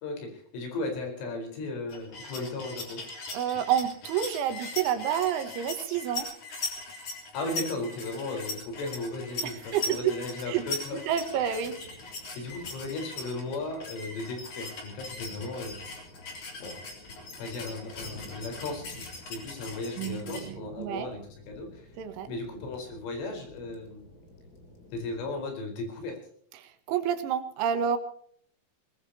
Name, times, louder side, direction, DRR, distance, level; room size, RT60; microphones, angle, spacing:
voice 1, 0.0-3.0 7.3-11.0 12.4-15.7 16.6-16.8 17.2-21.9 22.3-24.1 24.9-26.2, left 2 dB, 80° left, 4 dB, 7.0 m, -36 dB
sound 1, 1.9-20.4, left 2 dB, 40° left, 4.6 m, -40 dB
voice 2, 3.3-6.3 9.4-10.1 10.5-10.7 10.9-11.8 20.0-21.1 22.0-22.3 26.6-28.0, right 9 dB, 75° right, 9 dB, 3.8 m, -29 dB
sound 2, 8.5-25.4, left 1 dB, 25° left, 2.7 m, -52 dB
21.5 x 21.0 x 2.9 m, 0.62 s
omnidirectional pair, 5.6 m